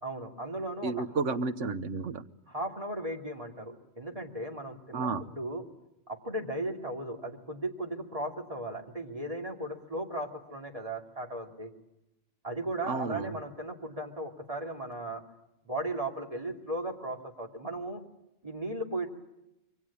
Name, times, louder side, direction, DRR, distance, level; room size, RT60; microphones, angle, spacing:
voice 1, 0.0-1.0 2.5-5.6 6.1-11.7 12.4-15.2 15.6-18.0 18.4-19.1, right 1 dB, 25° right, 2 dB, 2.8 m, -36 dB
voice 2, 0.8-2.2 4.9-5.2 12.9-13.4, right 4 dB, 70° right, 10 dB, 1.6 m, -31 dB
27.0 x 23.5 x 8.5 m, 0.91 s
omnidirectional pair, 1.3 m